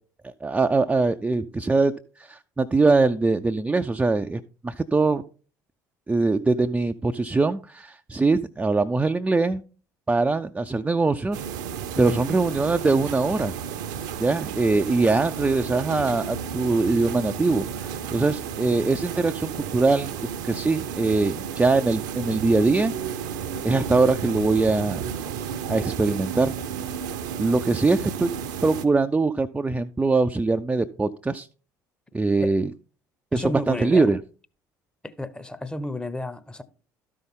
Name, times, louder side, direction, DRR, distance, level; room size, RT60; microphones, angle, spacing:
voice 1, 0.2-1.9 2.2-5.2 6.1-9.6 10.1-11.4 12.0-13.5 14.2-20.2 20.4-22.9 23.6-25.1 25.7-26.5 27.4-28.3 28.6-31.5 32.1-32.7 33.3-34.2, right 3 dB, 10° right, 0.4 m, -22 dB
sound 1, 11.3-28.9, right 7 dB, 70° right, 0.7 m, -32 dB
voice 2, 33.3-34.1 35.0-36.6, left 1 dB, 10° left, 0.8 m, -31 dB
12.5 x 5.5 x 3.6 m
figure-of-eight pair, 60°, 10 cm